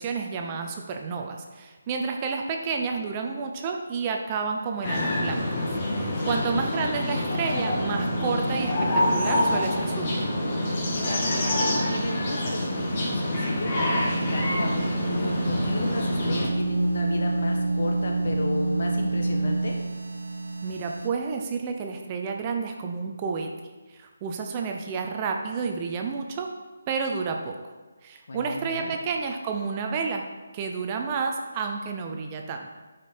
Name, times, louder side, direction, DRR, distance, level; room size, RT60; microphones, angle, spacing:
voice 1, 0.0-10.3 20.6-23.5 23.9-26.5 26.9-27.6 28.0-30.2 30.5-32.7, right 5 dB, 20° right, 3 dB, 0.6 m, -30 dB
sound 1, 4.8-16.5, left 1 dB, 35° left, 1.7 m, -27 dB
voice 2, 6.1-6.6 11.0-19.8 28.3-28.9, left 2 dB, 55° left, 1 dB, 1.5 m, -33 dB
sound 2, 7.2-21.1, right 2 dB, 75° right, 0.8 m, -30 dB
9.4 x 5.1 x 4.2 m, 1.3 s
hypercardioid pair, 165°, 0 cm